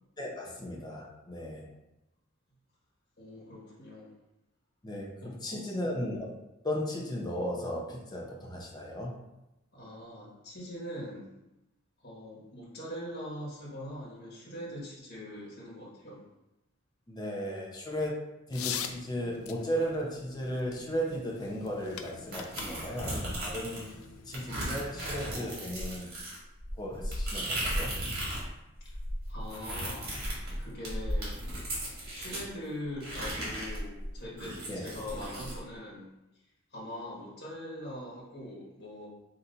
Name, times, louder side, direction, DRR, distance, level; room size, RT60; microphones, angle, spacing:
voice 1, 0.2-1.7 4.8-6.3 6.6-9.1 17.1-18.2 18.5-23.8 24.2-26.1 26.8-27.9 34.7-34.9, equal, 20° left, -2 dB, 0.8 m, -35 dB
voice 2, 3.2-4.1 5.2-5.8 9.7-11.3 12.0-16.2 28.8-28.9 29.3-30.1 30.6-31.4 32.1-36.1 36.7-39.1, left 1 dB, 50° left, -6 dB, 1.4 m, -42 dB
sound 1, 18.5-25.1, left 7 dB, 85° left, 0.4 m, -43 dB
sound 2, 22.3-23.9 24.3-28.5 28.8-32.5 33.0-35.6, right 1 dB, 50° right, 1.5 m, -36 dB
4.0 x 2.8 x 4.0 m, 0.94 s
head